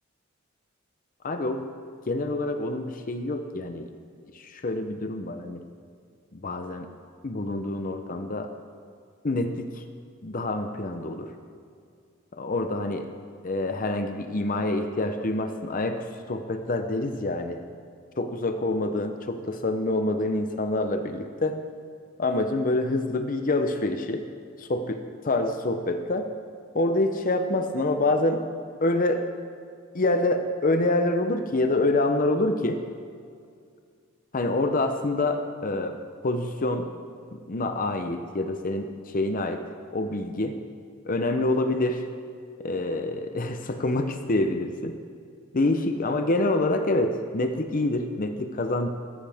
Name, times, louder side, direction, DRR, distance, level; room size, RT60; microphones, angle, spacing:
voice 1, 1.2-1.6 2.1-3.9 4.3-5.6 6.3-6.9 7.2-8.5 9.2-9.8 10.2-11.3 12.3-13.1 13.4-17.6 18.2-21.6 22.2-24.3 24.6-26.3 26.7-28.5 28.8-29.3 29.9-32.8 34.3-36.0 36.2-36.9 37.3-39.6 39.9-40.6 41.0-42.0 42.6-45.0 45.5-48.9, left 2 dB, 45° left, 7 dB, 0.7 m, -26 dB
16.5 x 14.0 x 3.5 m, 2.3 s
head